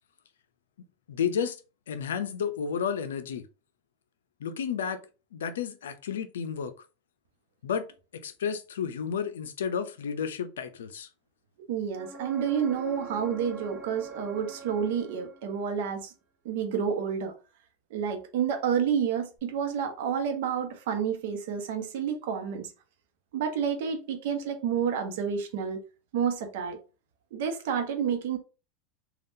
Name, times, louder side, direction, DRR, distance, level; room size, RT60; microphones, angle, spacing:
voice 1, 1.1-1.6 1.9-3.4 4.4-5.0 5.3-6.7 7.6-7.9 8.1-11.1, left 7 dB, 85° left, 0.5 m, -31 dB
voice 2, 11.7-16.1 16.4-17.3 17.9-22.7 23.3-25.8 26.1-26.8 27.3-28.4, right 7 dB, 70° right, 0.8 m, -29 dB
sound 1, 11.9-15.7 19.4-19.5, right 4 dB, 25° right, 0.6 m, -43 dB
3.5 x 2.3 x 2.6 m
hypercardioid pair, 100°, 0 cm